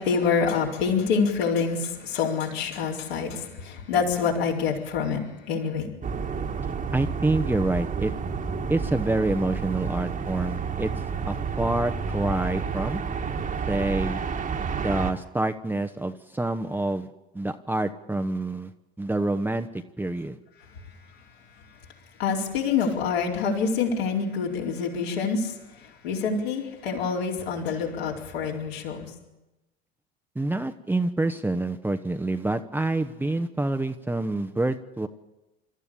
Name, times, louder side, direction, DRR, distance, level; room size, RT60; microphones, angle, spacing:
voice 1, 0.0-6.0 22.2-29.1, left 5 dB, 70° left, -2 dB, 4.4 m, -26 dB
sound 1, 6.0-15.1, right 5 dB, 25° right, 1.7 m, -30 dB
voice 2, 6.9-8.1 8.7-10.9 11.3-13.0 13.7-14.2 14.8-17.1 17.3-18.7 19.0-19.7 20.0-20.4 30.3-35.1, right 2 dB, 5° right, 6 dB, 1.0 m, -27 dB
26.5 x 13.5 x 8.7 m, 1.0 s
figure-of-eight pair, 75°, 32 cm